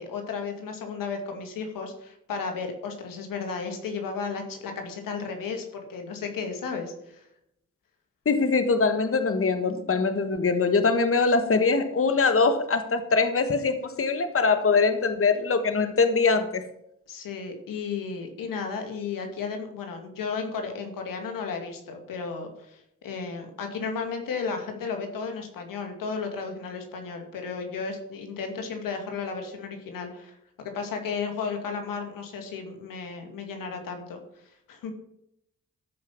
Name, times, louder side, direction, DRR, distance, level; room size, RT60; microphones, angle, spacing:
voice 1, 0.0-7.2 17.1-34.2 34.7-34.9, left 5 dB, 85° left, 4 dB, 2.2 m, -34 dB
voice 2, 8.2-16.6, left 4 dB, 40° left, 9 dB, 1.4 m, -23 dB
13.5 x 5.6 x 7.2 m, 0.78 s
supercardioid pair, 45°, 32 cm